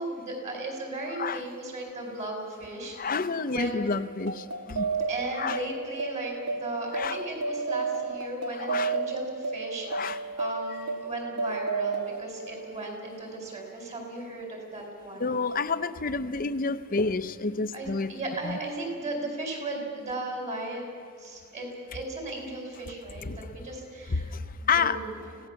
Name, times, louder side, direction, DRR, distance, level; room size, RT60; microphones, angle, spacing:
voice 1, 0.0-3.1 3.5-3.9 4.7-15.4 17.7-20.8 21.2-24.3 24.6-25.1, right 2 dB, 30° right, 1 dB, 4.6 m, -36 dB
voice 2, 2.9-4.9 5.4-5.6 6.9-7.2 8.5-8.9 9.9-10.2 15.2-18.1 18.4-18.6 23.2-23.4 24.1-25.0, left 4 dB, 40° left, 12 dB, 0.7 m, -29 dB
sound 1, 4.1-13.1, right 4 dB, 85° right, 1.6 m, -32 dB
25.0 x 17.0 x 7.1 m, 2.2 s
head